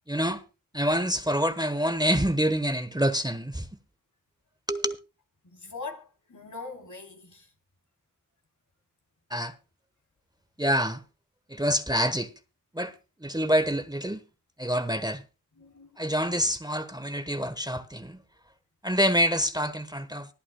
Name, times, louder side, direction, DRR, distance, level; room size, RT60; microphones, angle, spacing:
voice 1, 0.1-0.4 0.7-3.6 4.7-4.9 9.3-9.5 10.6-11.0 11.5-12.3 12.7-12.9 13.2-14.2 14.6-15.2 16.0-18.2 18.8-20.3, equal, 10° right, 1.1 m, -26 dB
voice 2, 5.4-7.5 15.5-16.0, left 4 dB, 60° left, 3.5 m, -42 dB
24.5 x 8.5 x 2.2 m
wide cardioid pair, 45°, 34 cm